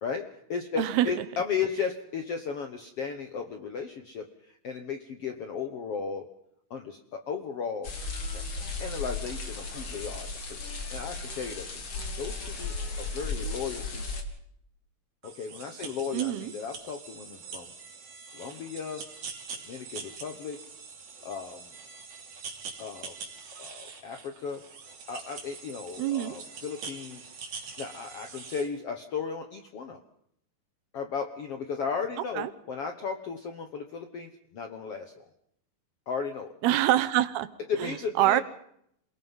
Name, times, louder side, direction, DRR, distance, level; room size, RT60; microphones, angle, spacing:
voice 1, 0.0-6.3 6.7-7.9 8.3-8.4 8.8-10.6 10.9-11.7 12.2-14.0 15.2-17.7 18.3-19.0 19.7-20.6 21.2-21.7 22.8-23.1 23.6-24.6 25.1-27.2 27.8-30.0 30.9-35.2 36.1-36.5 37.7-38.4, left 6 dB, 65° left, 5 dB, 1.5 m, -35 dB
voice 2, 0.8-1.1 16.1-16.5 26.0-26.4 32.4-32.5 36.6-37.5 37.8-38.4, right 13 dB, 90° right, 12 dB, 3.0 m, -25 dB
sound 1, 7.8-14.2, left 3 dB, 35° left, 2.9 m, -35 dB
sound 2, 15.2-28.7, right 5 dB, 55° right, 4.2 m, -44 dB
28.0 x 18.5 x 5.5 m, 0.71 s
omnidirectional pair, 4.4 m